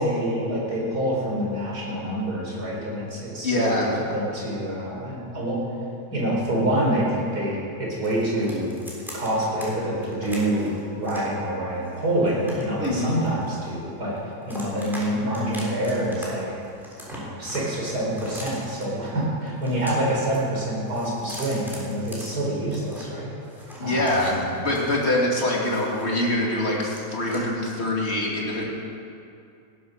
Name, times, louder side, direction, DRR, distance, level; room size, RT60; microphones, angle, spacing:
voice 1, 0.0-5.6 6.1-8.7 9.1-10.7 11.0-14.2 14.5-16.5 17.1-23.3 23.8-24.4, right 1 dB, 65° right, -4 dB, 4.9 m, -26 dB
voice 2, 3.4-4.0 12.8-13.2 23.8-28.7, left 1 dB, 35° left, -3 dB, 2.9 m, -24 dB
sound 1, 8.0-9.7 10.0-11.3 11.8-13.9 14.2-15.1 15.3-16.2 16.5-18.8 19.5-20.4 20.7-23.1 23.4-26.3 26.6-27.4, equal, ahead, 3.6 m, -41 dB
18.0 x 10.5 x 6.6 m, 2.5 s
omnidirectional pair, 1.8 m